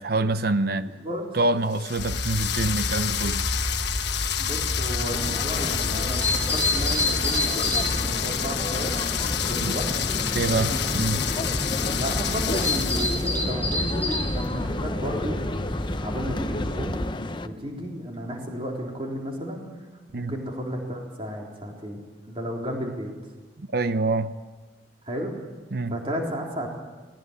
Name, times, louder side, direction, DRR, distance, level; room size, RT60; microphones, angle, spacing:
voice 1, 0.0-0.9 1.3-3.4 9.6-9.7 10.3-11.3 20.1-20.4 23.6-24.4 25.7-26.0, right 2 dB, 55° right, 0.7 m, -26 dB
voice 2, 0.8-1.2 4.4-8.9 9.4-9.8 11.8-15.4 16.0-17.0 17.4-19.7 20.1-23.1 25.0-25.3 25.9-26.7, equal, 30° right, 3.9 m, -33 dB
sound 1, 1.7-13.4, left 10 dB, 65° left, 1.3 m, -29 dB
sound 2, 2.0-17.0, left 1 dB, 10° left, 4.8 m, -30 dB
sound 3, 5.1-17.5, left 2 dB, 25° left, 0.8 m, -32 dB
19.5 x 19.0 x 9.9 m
head